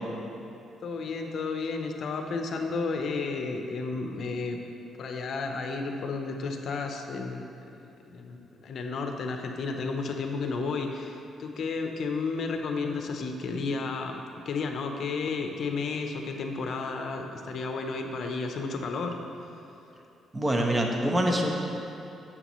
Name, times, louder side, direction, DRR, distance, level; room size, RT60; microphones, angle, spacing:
voice 1, 0.8-4.6 5.0-14.2 14.4-19.2, left 4 dB, 60° left, 4 dB, 0.8 m, -32 dB
voice 2, 20.3-21.5, equal, 20° right, 1 dB, 1.0 m, -25 dB
9.7 x 7.4 x 3.1 m, 2.9 s
cardioid pair, 90°, 0 cm